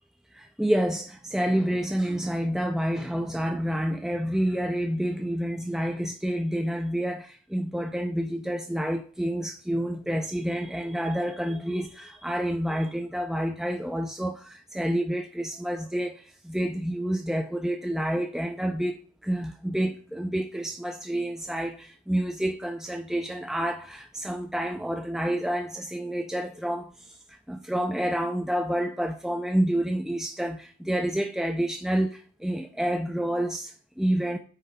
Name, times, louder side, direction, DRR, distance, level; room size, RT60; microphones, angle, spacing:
voice 1, 0.3-34.4, equal, 5° right, 0.3 m, -29 dB
9.2 x 4.4 x 3.6 m
head